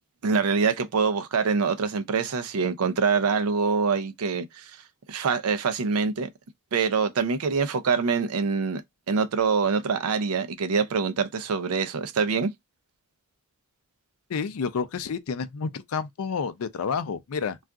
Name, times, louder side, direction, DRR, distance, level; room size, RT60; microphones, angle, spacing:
voice 1, 0.2-4.6 5.1-6.3 6.7-8.8 9.1-12.5, right 5 dB, 85° right, 0.5 m, -25 dB
voice 2, 14.3-17.6, left 5 dB, 80° left, 0.4 m, -30 dB
2.4 x 2.3 x 3.6 m
head